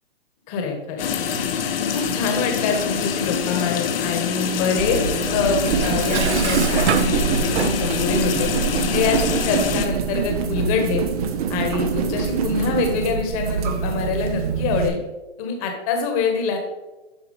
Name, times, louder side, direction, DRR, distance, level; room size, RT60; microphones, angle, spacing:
voice 1, 0.5-1.1 1.9-5.0 5.3-8.5 8.9-11.0 11.5-15.0 15.4-16.6, left 5 dB, 35° left, 3 dB, 1.4 m, -25 dB
sound 1, 1.0-9.9, left 7 dB, 60° left, 0.8 m, -25 dB
sound 2, 4.7-14.9, right 7 dB, 35° right, 0.6 m, -25 dB
Dishes pots and pans, 5.7-8.1, right 9 dB, 80° right, 0.5 m, -27 dB
7.4 x 4.5 x 4.0 m, 1.1 s
hypercardioid pair, 140°, 33 cm